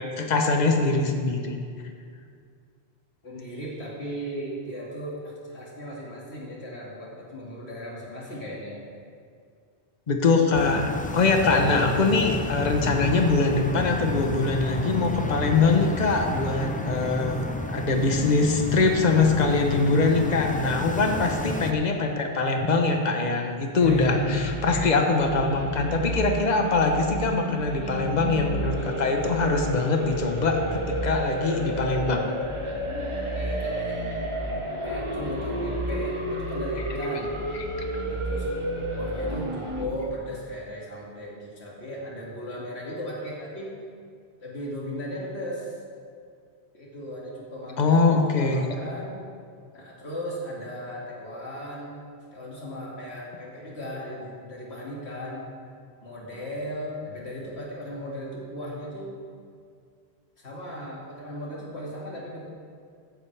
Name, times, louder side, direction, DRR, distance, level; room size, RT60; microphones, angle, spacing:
voice 1, 0.0-1.6 10.1-17.5 17.7-32.3 47.8-48.7, left 3 dB, 45° left, 3 dB, 1.1 m, -23 dB
voice 2, 3.2-8.8 16.6-17.1 21.0-21.8 23.7-24.2 32.8-37.4 38.0-43.7 44.4-45.7 46.7-49.2 49.7-52.0 52.3-55.6 56.0-59.1 60.4-62.5, equal, 75° left, -5 dB, 2.7 m, -37 dB
sound 1, 10.5-21.7, left 1 dB, 15° left, 0.3 m, -31 dB
sound 2, 23.8-39.9, right 1 dB, 30° right, 1.3 m, -31 dB
14.5 x 10.5 x 3.4 m, 2.2 s
omnidirectional pair, 1.1 m